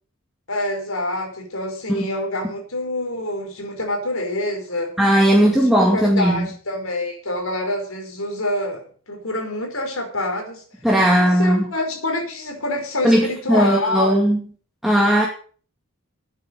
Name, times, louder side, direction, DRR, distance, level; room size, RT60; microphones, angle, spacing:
voice 1, 0.5-4.9 5.3-8.8 9.1-10.6 11.2-14.2, left 1 dB, 85° left, 5.0 m, -26 dB
voice 2, 5.0-6.4 10.8-11.6 13.0-14.4 14.8-15.3, equal, ahead, 2.3 m, -17 dB
11.0 x 9.2 x 6.7 m
head